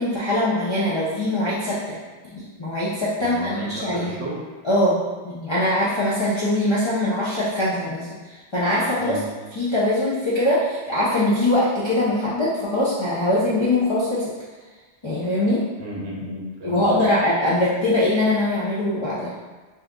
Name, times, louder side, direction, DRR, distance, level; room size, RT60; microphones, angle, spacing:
voice 1, 0.0-2.0 2.3-4.1 4.6-9.2 9.5-14.3 15.0-15.6 16.6-19.5, left 1 dB, 40° left, -9 dB, 0.4 m, -22 dB
voice 2, 3.2-4.5 9.0-9.3 15.8-17.1, right 1 dB, 70° right, -3 dB, 0.9 m, -34 dB
2.8 x 2.4 x 3.5 m, 1.3 s
omnidirectional pair, 1.2 m